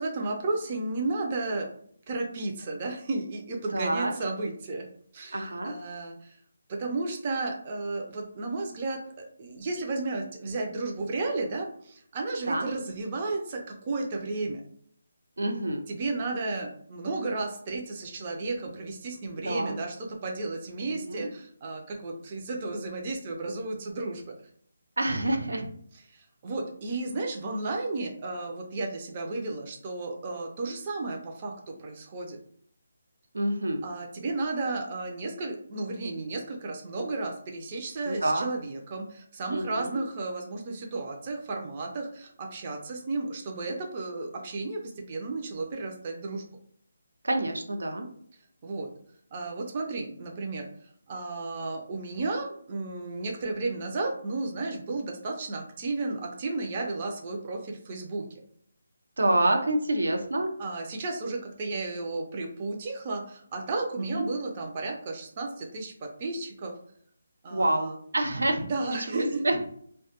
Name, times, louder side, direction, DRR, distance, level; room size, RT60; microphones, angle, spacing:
voice 1, 0.0-1.7 2.1-4.9 5.1-6.4 6.7-14.6 15.9-24.4 26.1-32.4 33.8-46.4 48.6-48.9 49.3-50.7 51.1-58.3 60.6-66.7 67.4-68.0 68.5-69.4, right 3 dB, 30° right, 1 dB, 0.4 m, -33 dB
voice 2, 3.7-4.1 5.3-5.7 12.5-12.7 15.4-15.8 19.4-19.8 21.1-21.3 25.0-25.7 33.3-33.8 38.1-38.5 39.5-40.0 47.2-48.1 59.2-60.5 64.1-64.3 67.5-69.6, right 1 dB, 90° right, 4 dB, 0.5 m, -27 dB
2.1 x 2.0 x 2.8 m, 0.63 s
hypercardioid pair, 165°, 0 cm